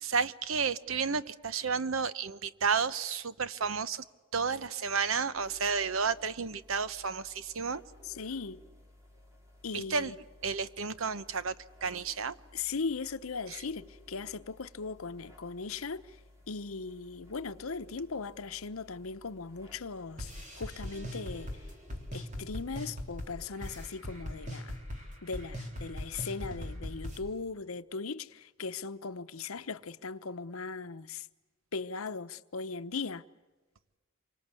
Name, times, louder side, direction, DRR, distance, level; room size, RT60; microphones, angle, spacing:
voice 1, 0.0-4.0 4.3-7.8 9.9-10.1 10.4-11.5 11.8-12.3, right 5 dB, 80° right, 0.9 m, -31 dB
sound 1, 5.3-24.3, left 1 dB, 15° right, 3.9 m, -57 dB
voice 2, 8.0-8.6 9.6-10.2 12.5-16.2 16.5-21.7 22.1-24.8 25.2-31.3 31.7-33.2, left 4 dB, 90° left, 0.9 m, -38 dB
sound 2, 20.2-27.2, equal, 35° right, 3.6 m, -40 dB
27.5 x 25.0 x 8.3 m
head